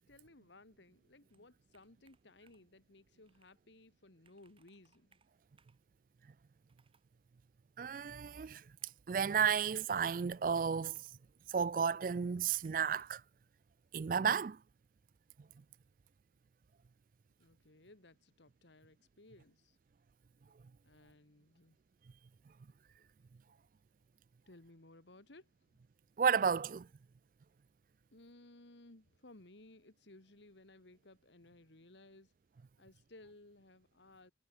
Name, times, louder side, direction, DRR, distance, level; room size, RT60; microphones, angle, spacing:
voice 1, 0.1-5.2 17.4-19.8 20.8-21.8 24.5-25.5 28.1-32.3 32.8-34.3, left 2 dB, 80° left, 2.0 m, -60 dB
Computer keyboard, 1.3-2.8 3.3-3.6 3.9-4.0 4.2-5.9 6.7-7.1 7.9-9.1 9.4-11.2 12.0-13.2, right 5 dB, 30° right, 4.3 m, -73 dB
voice 2, 7.8-8.6 9.1-11.1 11.5-13.2 13.9-14.6 26.2-26.9, right 6 dB, 45° right, 0.3 m, -32 dB
head